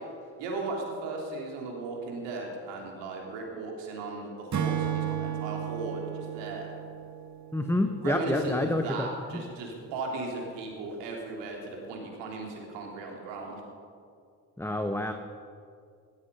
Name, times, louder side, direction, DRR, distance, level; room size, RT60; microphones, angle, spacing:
voice 1, 0.4-6.7 8.0-13.6, right 3 dB, 80° right, 0 dB, 3.0 m, -36 dB
Acoustic guitar / Strum, 4.5-7.9, right 9 dB, 40° right, 1.4 m, -33 dB
voice 2, 7.5-9.4 14.6-15.1, left 1 dB, 5° left, 6 dB, 1.0 m, -28 dB
16.0 x 13.5 x 5.4 m, 2.3 s
hypercardioid pair, 50°, 42 cm